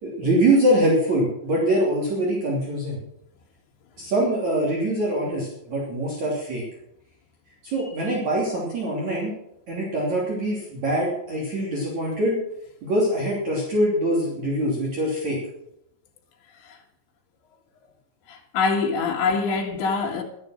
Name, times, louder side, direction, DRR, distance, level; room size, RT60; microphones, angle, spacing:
voice 1, 0.0-3.0 4.0-6.6 7.6-9.4 9.7-12.4 12.8-15.4, right 1 dB, 45° right, 4.0 m, -23 dB
voice 2, 18.3-20.2, left 4 dB, 90° left, 4.2 m, -25 dB
12.5 x 11.5 x 6.3 m
omnidirectional pair, 5.0 m